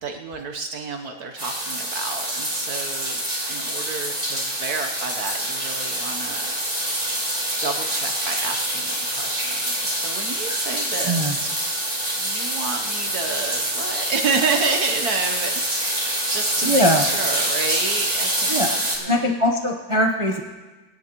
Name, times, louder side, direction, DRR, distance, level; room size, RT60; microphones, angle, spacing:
voice 1, 0.0-3.2 3.5-6.6 7.6-11.5 12.2-15.9 16.3-19.3, right 4 dB, 65° right, 4 dB, 1.3 m, -30 dB
sound 1, 1.4-19.0, right 1 dB, 20° right, 3.2 m, -26 dB
voice 2, 11.0-11.4 16.6-17.1 18.5-18.7 19.1-20.4, equal, 35° right, 2 dB, 0.4 m, -21 dB
24.5 x 11.0 x 2.9 m, 1.3 s
omnidirectional pair, 1.9 m